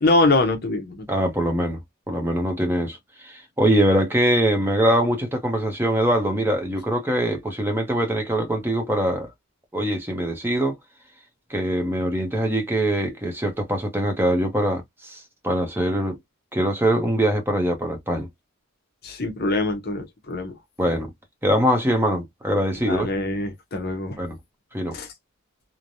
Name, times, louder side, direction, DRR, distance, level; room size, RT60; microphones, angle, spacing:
voice 1, 0.0-1.0 19.0-20.5 22.8-24.2 24.9-25.1, left 2 dB, 45° left, 0.7 m, -23 dB
voice 2, 1.1-1.8 2.1-9.3 9.7-10.8 11.5-16.2 16.5-18.3 20.8-21.1 21.4-23.1 24.2-24.4 24.7-25.0, right 1 dB, 10° right, 0.8 m, -23 dB
3.2 x 2.1 x 2.5 m
head